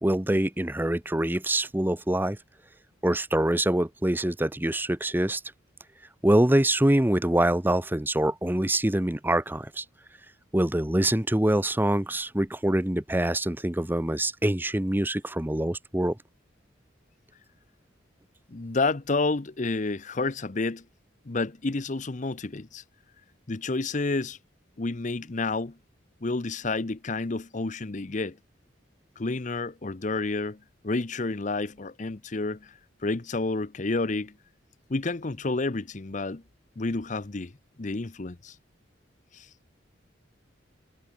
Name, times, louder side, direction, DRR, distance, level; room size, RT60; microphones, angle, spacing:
voice 1, 0.0-2.4 3.0-5.4 6.2-9.8 10.5-16.2, right 1 dB, 10° right, 0.8 m, -25 dB
voice 2, 18.5-20.8 21.3-22.8 23.5-24.4 24.8-25.8 26.2-28.4 29.2-32.7 33.0-34.3 34.9-36.4 36.8-37.5 37.8-38.5 39.3-39.5, left 3 dB, 40° left, 0.8 m, -30 dB
head